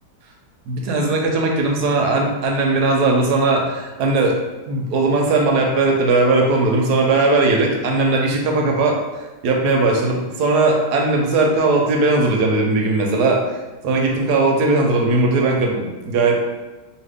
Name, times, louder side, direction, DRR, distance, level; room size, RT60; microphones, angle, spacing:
voice 1, 0.7-4.4 4.6-13.6 13.8-16.4, right 3 dB, 85° right, 1 dB, 1.2 m, -18 dB
2.8 x 2.7 x 3.4 m, 1.2 s
omnidirectional pair, 1.7 m